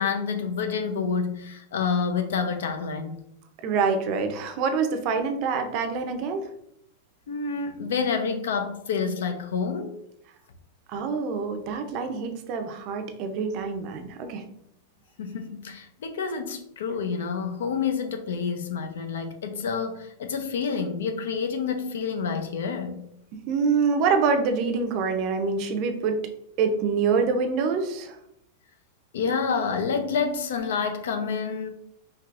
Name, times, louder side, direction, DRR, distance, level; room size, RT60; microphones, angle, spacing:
voice 1, 0.0-3.2 7.3-10.0 15.2-23.0 29.1-31.7, left 5 dB, 85° left, 7 dB, 0.6 m, -28 dB
voice 2, 3.6-6.5 10.9-14.4 23.5-26.2 26.6-28.2, right 5 dB, 40° right, 6 dB, 0.5 m, -26 dB
4.6 x 2.8 x 2.4 m, 0.75 s
supercardioid pair, 160°, 0 cm